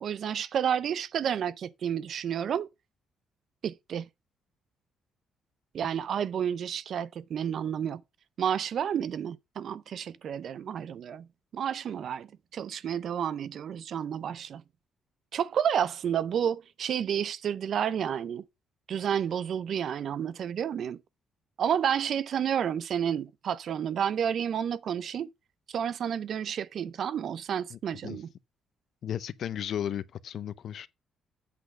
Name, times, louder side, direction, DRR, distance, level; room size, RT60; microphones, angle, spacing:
voice 1, 0.0-2.7 3.6-4.1 5.7-8.0 8.4-11.3 11.5-14.6 15.3-18.4 18.9-21.0 21.6-25.3 25.7-28.3, right 8 dB, 60° right, 0.5 m, -30 dB
voice 2, 27.7-28.2 29.0-30.9, left 10 dB, 65° left, 0.6 m, -35 dB
8.3 x 3.9 x 6.3 m
cardioid pair, 90°, 0 cm